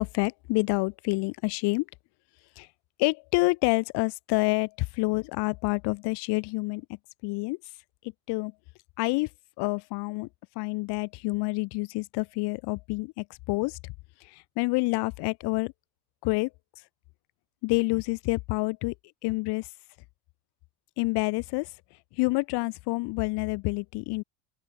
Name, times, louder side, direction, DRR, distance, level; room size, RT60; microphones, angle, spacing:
voice 1, 0.0-1.8 2.6-2.7 3.0-6.9 7.2-7.6 8.3-8.5 9.0-9.3 9.6-10.3 10.6-13.8 14.3-15.7 16.2-16.5 17.6-18.9 19.2-19.7 21.0-21.7 22.2-24.2, left 25 dB, 55° left, 0.7 m, -28 dB
open air
hypercardioid pair, 80°, 49 cm